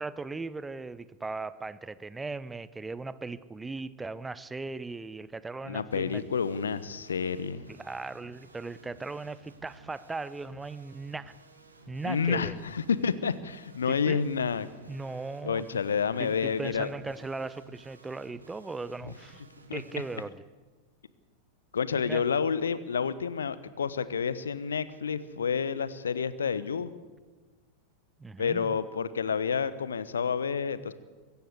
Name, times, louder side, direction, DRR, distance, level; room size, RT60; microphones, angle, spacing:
voice 1, 0.0-6.2 7.7-11.3 11.9-12.6 13.9-14.3 14.9-15.8 16.2-19.4 19.7-20.4 21.9-22.2 28.2-28.8, right 3 dB, 10° right, 17 dB, 0.7 m, -38 dB
voice 2, 5.7-7.6 12.0-14.7 15.4-16.9 19.7-19.8 21.7-26.9 28.4-30.9, left 6 dB, 70° left, 16 dB, 1.0 m, -29 dB
sound 1, 5.9-20.2, right 4 dB, 75° right, 2.6 m, -55 dB
24.0 x 14.0 x 8.3 m, 1.4 s
figure-of-eight pair, 90°, 0 cm